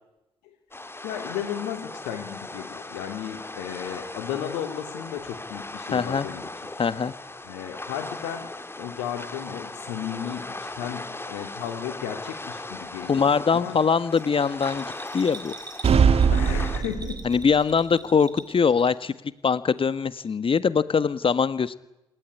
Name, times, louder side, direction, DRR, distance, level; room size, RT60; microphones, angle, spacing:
sound 1, 0.7-16.8, left 2 dB, 15° left, 3.7 m, -38 dB
voice 1, 1.0-6.5 7.4-8.5 8.8-13.8 16.3-17.2, left 10 dB, 75° left, 4 dB, 2.9 m, -34 dB
voice 2, 5.9-6.3 6.8-7.1 13.1-15.5 17.2-19.1 19.4-21.8, left 6 dB, 40° left, 15 dB, 1.5 m, -22 dB
Bell, 14.1-19.2 19.5-20.3 20.6-20.7, right 3 dB, 30° right, 6.6 m, -44 dB
sound 2, 15.8-17.5, right 6 dB, 50° right, 1.9 m, -20 dB
28.0 x 16.0 x 9.8 m, 0.88 s
hypercardioid pair, 40°, 14 cm